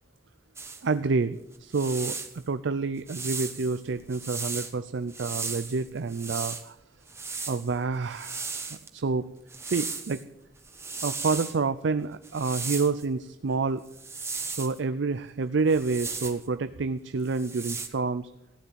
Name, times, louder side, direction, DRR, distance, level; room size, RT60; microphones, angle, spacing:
sound 1, 0.6-0.8 1.5-2.4 3.1-4.7 5.1-6.6 7.1-8.9 9.5-10.2 10.6-11.6 12.2-13.0 13.9-14.8 15.7-16.5 17.2-17.9, right 4 dB, 15° right, 1.2 m, -36 dB
voice 1, 0.8-6.8 7.5-9.3 9.6-10.2 11.0-13.8 14.6-18.3, right 4 dB, 70° right, 12 dB, 0.5 m, -28 dB
15.0 x 9.7 x 7.0 m, 0.81 s
head